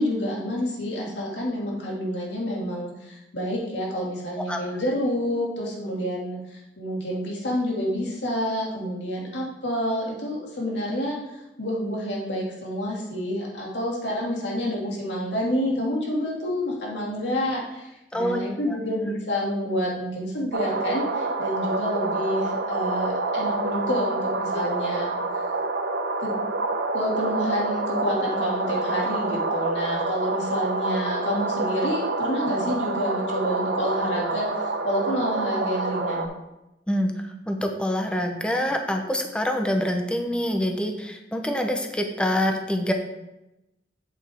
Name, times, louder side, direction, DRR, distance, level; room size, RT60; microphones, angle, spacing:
voice 1, 0.0-11.2 11.6-25.4 26.2-26.3 26.9-36.3, equal, 90° left, -3 dB, 2.4 m, -28 dB
voice 2, 18.1-18.8 36.9-42.9, equal, 5° left, 4 dB, 0.8 m, -26 dB
sound 1, 20.5-36.3, right 3 dB, 75° right, 0.9 m, -27 dB
8.1 x 7.3 x 3.6 m, 0.93 s
head